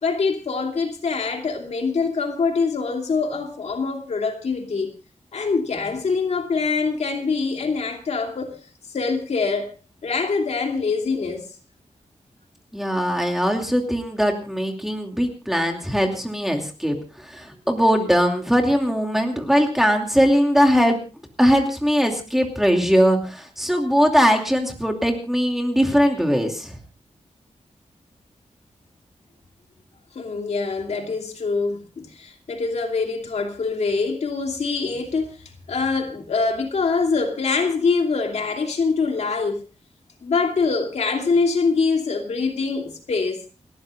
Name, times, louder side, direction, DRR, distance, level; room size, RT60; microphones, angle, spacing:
voice 1, 0.0-4.9 5.3-8.6 8.9-9.7 10.0-11.5 30.1-35.3 35.7-39.6 40.2-43.4, left 4 dB, 65° left, 2.8 m, -24 dB
voice 2, 12.7-21.0 21.4-26.8, equal, 5° right, 2.6 m, -20 dB
29.5 x 13.5 x 2.5 m
wide cardioid pair, 150°, 12 cm